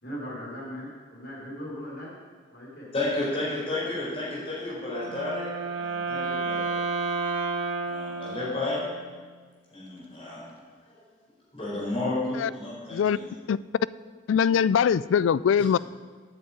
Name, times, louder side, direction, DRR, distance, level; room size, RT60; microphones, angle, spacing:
voice 1, 0.0-2.1 2.5-2.9, equal, 50° left, 4.5 m, -38 dB
voice 2, 2.9-7.2 7.9-8.8 9.7-10.4 11.5-13.3, left 2 dB, 30° left, 4.5 m, -32 dB
Wind instrument woodwind instrument, 4.8-9.1, right 4 dB, 70° right, 1.6 m, -31 dB
voice 3, 14.3-15.8, left 7 dB, 75° left, 0.3 m, -22 dB
9.2 x 7.8 x 8.7 m
head